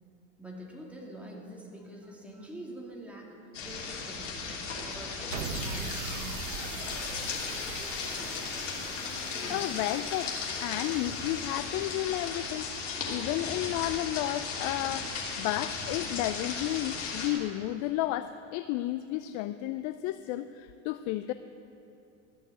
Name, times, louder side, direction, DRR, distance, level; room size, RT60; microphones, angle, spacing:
voice 1, 0.4-3.3 3.6-6.8, right 1 dB, 5° right, -2 dB, 2.7 m, -45 dB
sound 1, 3.5-17.3, left 4 dB, 80° left, 2.9 m, -36 dB
sound 2, 5.3-11.7, right 7 dB, 90° right, 0.8 m, -42 dB
voice 2, 9.5-12.7 13.1-21.3, left 14 dB, 50° left, 11 dB, 0.5 m, -32 dB
13.5 x 6.6 x 8.5 m, 2.9 s
hypercardioid pair, 95°, 37 cm